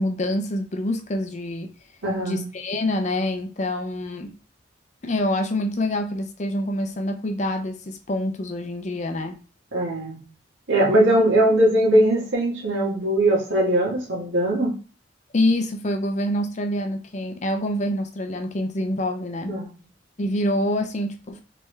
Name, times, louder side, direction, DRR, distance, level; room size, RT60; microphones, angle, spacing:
voice 1, 0.0-1.7 2.2-4.3 5.0-9.3 15.3-19.5 20.2-21.4, left 1 dB, 40° left, 0.5 m, -26 dB
voice 2, 2.0-2.4 9.7-10.2 10.7-14.7 19.5-19.7, right 1 dB, 90° right, 1.6 m, -20 dB
3.3 x 3.2 x 3.3 m
head